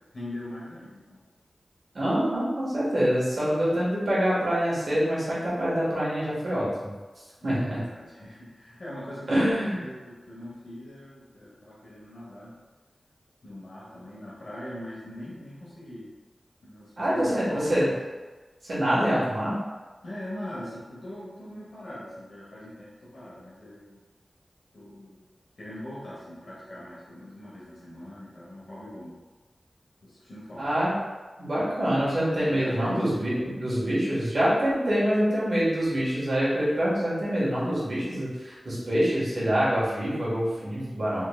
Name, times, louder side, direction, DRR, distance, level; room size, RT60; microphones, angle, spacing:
voice 1, 0.1-1.2 7.4-9.5 9.7-12.5 13.4-16.1 16.6-18.0 20.0-24.0 24.7-25.2 25.6-29.2 30.0-30.7 32.5-33.0, left 1 dB, 75° left, -8 dB, 1.0 m, -41 dB
voice 2, 1.9-6.9 7.4-7.8 9.3-9.8 17.0-17.9 18.6-19.5 30.6-30.9 31.4-41.3, equal, 65° right, -8 dB, 1.4 m, -25 dB
3.7 x 3.1 x 2.3 m, 1.3 s
wide cardioid pair, 60°, 0 cm